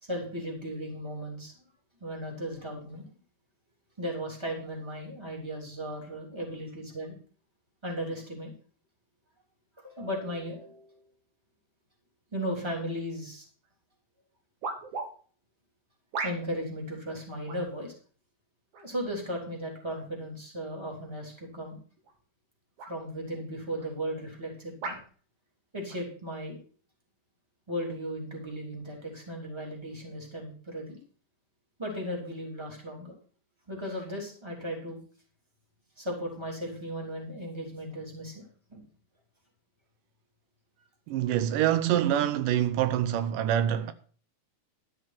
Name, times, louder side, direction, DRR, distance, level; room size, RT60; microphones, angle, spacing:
voice 1, 0.0-1.5 2.0-3.0 4.0-7.2 7.8-8.5 9.8-11.1 12.3-13.4 16.2-17.9 18.8-21.8 22.9-25.0 25.7-26.6 27.7-31.0 31.8-33.1 33.7-35.0 36.0-38.4 38.7-38.8 41.2-41.3, equal, 10° right, 3.0 m, -36 dB
sound 1, 13.6-13.7 14.6-15.1 16.1-16.7 17.5-17.7 18.7-19.1 19.9-20.1 22.0-22.2 22.8-23.0 23.8-23.9 24.8-25.1 25.9-26.0, right 4 dB, 70° right, 3.0 m, -37 dB
voice 2, 41.1-43.9, right 11 dB, 85° right, 2.4 m, -25 dB
12.5 x 6.4 x 5.9 m
omnidirectional pair, 3.7 m